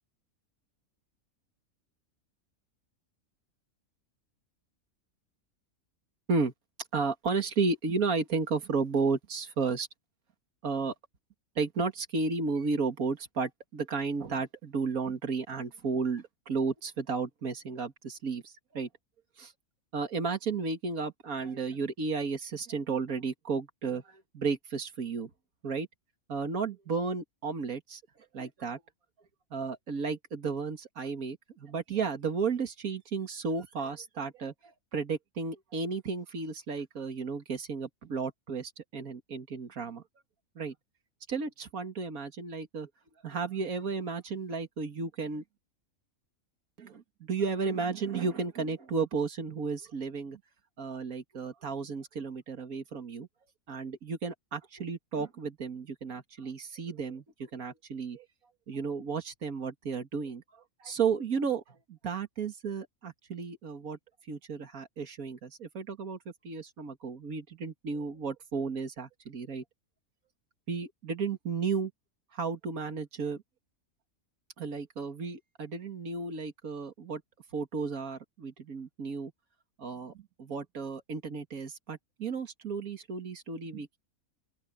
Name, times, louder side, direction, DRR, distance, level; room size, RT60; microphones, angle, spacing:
voice 1, 6.9-9.9 10.6-10.9 11.6-18.9 19.4-19.5 19.9-25.3 25.6-25.9 26.3-28.0 28.3-28.8 29.5-40.0 40.6-40.8 41.3-42.9 43.2-45.4 46.8-50.4 50.8-53.3 53.7-58.3 58.7-64.0 64.3-69.6 70.7-71.9 72.3-73.4 74.6-77.2 77.5-79.3 79.8-84.0, right 5 dB, 85° right, 2.4 m, -33 dB
open air
omnidirectional pair, 1.5 m